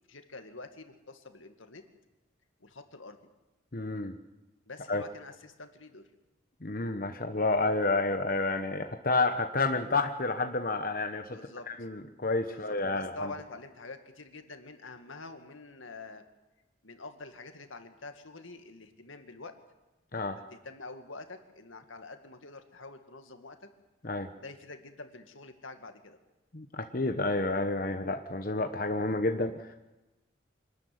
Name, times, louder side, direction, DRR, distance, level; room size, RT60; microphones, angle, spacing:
voice 1, 0.1-1.8 2.6-3.2 4.7-6.1 11.1-11.7 12.5-16.2 16.8-19.5 20.3-23.6 24.4-26.2, left 3 dB, 85° left, 7 dB, 2.2 m, -46 dB
voice 2, 3.7-4.1 4.9-5.0 6.6-11.4 11.7-13.3 20.1-20.4 24.0-24.3 26.5-29.8, left 3 dB, 45° left, 6 dB, 1.1 m, -30 dB
25.5 x 13.0 x 9.6 m, 1.1 s
head